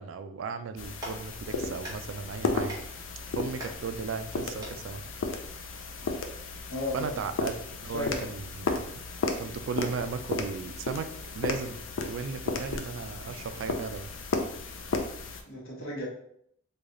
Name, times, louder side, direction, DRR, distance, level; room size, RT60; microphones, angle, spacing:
voice 1, 0.0-2.8 3.4-5.0 6.9-8.8 9.4-11.1 11.4-11.8 12.1-14.1, right 5 dB, 70° right, 9 dB, 0.3 m, -36 dB
Clapping, 0.7-6.2, right 1 dB, 20° right, 0.9 m, -47 dB
sound 1, 0.8-15.4, left 3 dB, 70° left, 0.4 m, -34 dB
voice 2, 6.7-7.2 7.9-8.3 15.4-16.1, left 1 dB, 90° left, -3 dB, 1.2 m, -34 dB
3.3 x 2.3 x 3.7 m, 0.67 s
head